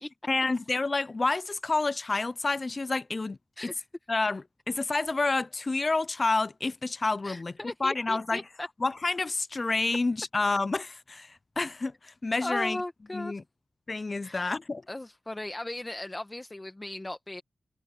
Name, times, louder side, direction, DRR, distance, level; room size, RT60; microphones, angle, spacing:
voice 1, 0.3-3.4 3.6-3.7 4.1-7.5 7.8-8.4 8.8-12.8 13.1-13.4 13.9-14.9, left 3 dB, 35° left, 0.4 m, -29 dB
voice 2, 7.2-8.7 12.4-13.4 14.2-14.5 14.9-17.4, left 1 dB, 20° left, 1.1 m, -37 dB
wide cardioid pair, 120°, 0 cm